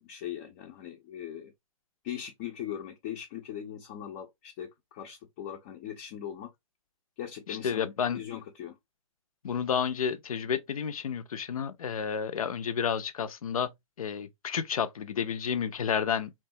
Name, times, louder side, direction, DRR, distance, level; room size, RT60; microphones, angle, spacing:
voice 1, 0.0-1.5 2.0-6.5 7.2-8.8, left 10 dB, 30° left, 0.4 m, -40 dB
voice 2, 7.5-8.2 9.4-13.7 14.0-16.3, left 7 dB, 85° left, 0.5 m, -31 dB
2.9 x 2.2 x 2.6 m
hypercardioid pair, 140°, 18 cm